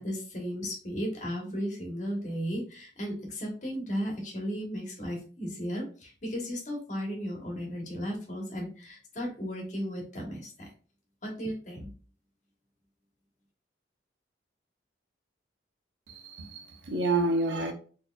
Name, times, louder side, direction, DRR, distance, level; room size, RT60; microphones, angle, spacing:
voice 1, 0.0-10.7 11.2-11.9, equal, 40° left, 1.2 m, -35 dB
voice 2, 16.1-17.7, right 2 dB, 80° right, 0.8 m, -29 dB
4.1 x 3.0 x 2.4 m
head